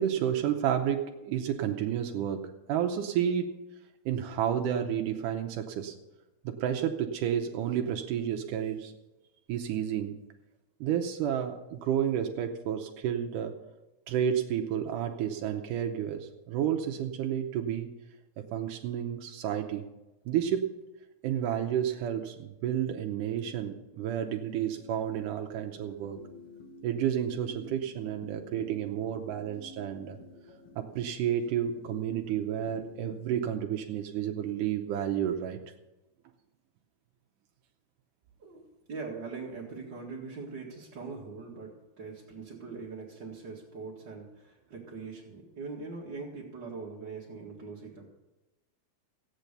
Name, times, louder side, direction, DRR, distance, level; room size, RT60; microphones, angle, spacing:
voice 1, 0.0-3.6 4.1-6.0 6.4-8.9 9.5-10.2 10.8-13.5 14.1-17.9 18.4-19.9 20.3-20.8 21.2-26.2 26.8-30.2 30.8-35.6, right 9 dB, 80° right, 4 dB, 2.4 m, -31 dB
sound 1, 24.2-33.2, left 2 dB, 45° left, 2.9 m, -51 dB
voice 2, 38.4-48.0, right 4 dB, 40° right, -5 dB, 2.2 m, -42 dB
15.0 x 9.1 x 6.7 m, 1.0 s
omnidirectional pair, 3.7 m